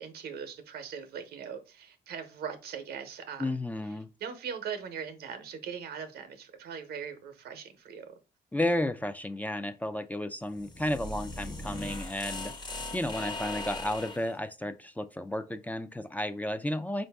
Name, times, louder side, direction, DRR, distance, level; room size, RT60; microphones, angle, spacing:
voice 1, 0.0-3.6 4.2-8.1, right 7 dB, 85° right, 0.8 m, -40 dB
voice 2, 3.4-4.1 8.5-12.5 12.9-17.1, left 1 dB, 10° left, 0.4 m, -32 dB
sound 1, 10.5-14.3, left 2 dB, 25° left, 0.9 m, -39 dB
4.5 x 2.6 x 3.4 m
cardioid pair, 85°, 16 cm